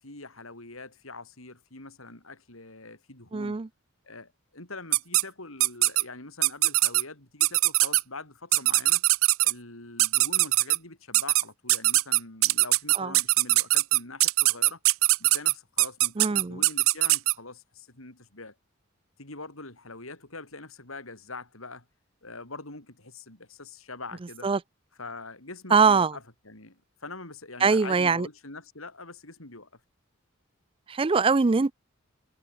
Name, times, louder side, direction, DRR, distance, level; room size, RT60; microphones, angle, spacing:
voice 1, 0.0-3.6 4.0-9.0 9.4-14.8 15.2-18.5 19.2-21.8 22.2-24.5 25.0-29.8, left 3 dB, 85° left, 6.0 m, -43 dB
voice 2, 3.3-3.7 13.0-13.1 16.2-16.6 24.4-24.6 25.7-26.1 27.6-28.3 30.9-31.7, right 4 dB, 25° right, 0.4 m, -22 dB
sound 1, 4.9-5.2 5.6-6.0 6.4-7.0 7.4-8.0 8.5-9.5 10.0-10.8 11.1-11.4 11.7-17.3, right 19 dB, 90° right, 0.6 m, -21 dB
head